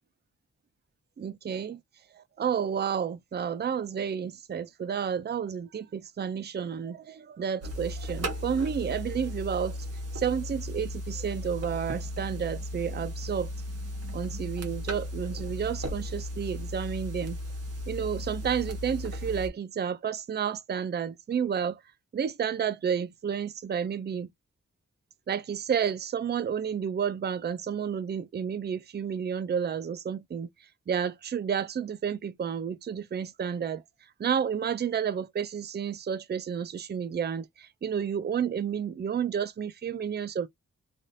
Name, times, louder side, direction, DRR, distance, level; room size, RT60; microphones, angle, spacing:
voice 1, 1.2-1.8 2.1-9.8 10.1-13.5 14.1-17.4 17.9-21.8 22.1-24.3 25.3-30.5 30.9-33.8 34.2-40.5, right 7 dB, 35° right, 0.4 m, -31 dB
sound 1, 7.6-19.5, left 1 dB, 55° right, 1.2 m, -36 dB
3.4 x 2.4 x 2.6 m
wide cardioid pair, 90°, 30 cm